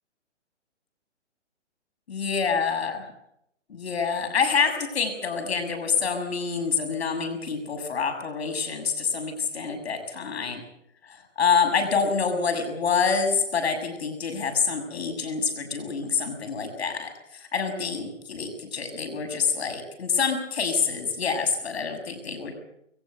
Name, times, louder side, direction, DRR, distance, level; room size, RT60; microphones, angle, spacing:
voice 1, 2.1-3.0 3.7-10.6 11.1-22.5, left 5 dB, 60° left, 5 dB, 6.9 m, -27 dB
22.0 x 18.5 x 8.0 m, 0.76 s
figure-of-eight pair, 140°, 36 cm